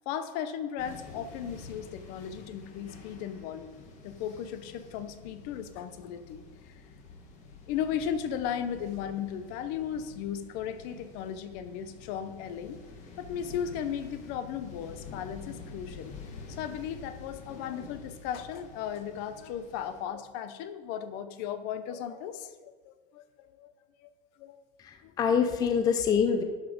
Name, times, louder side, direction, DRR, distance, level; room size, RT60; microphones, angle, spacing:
voice 1, 0.1-6.4 7.7-12.8 13.2-16.1 16.5-23.7 24.0-24.1 24.4-24.6 25.0-25.1, left 8 dB, 50° left, 11 dB, 0.8 m, -36 dB
sound 1, 0.8-20.0, left 4 dB, 35° left, 1.6 m, -48 dB
voice 2, 24.8-26.4, left 7 dB, 20° left, 7 dB, 0.5 m, -25 dB
12.0 x 7.1 x 5.2 m, 1.4 s
cardioid pair, 175°, 20 cm